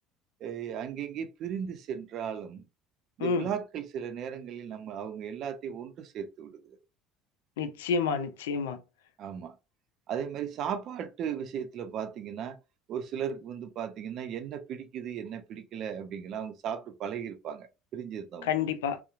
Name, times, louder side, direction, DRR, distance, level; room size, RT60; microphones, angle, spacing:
voice 1, 0.4-2.6 3.2-6.8 9.2-9.6 10.1-12.6 12.9-18.5, right 8 dB, 55° right, 0.5 m, -36 dB
voice 2, 7.6-8.8 18.4-19.0, left 6 dB, 80° left, 0.4 m, -29 dB
2.8 x 2.1 x 2.4 m
hypercardioid pair, 70°, 0 cm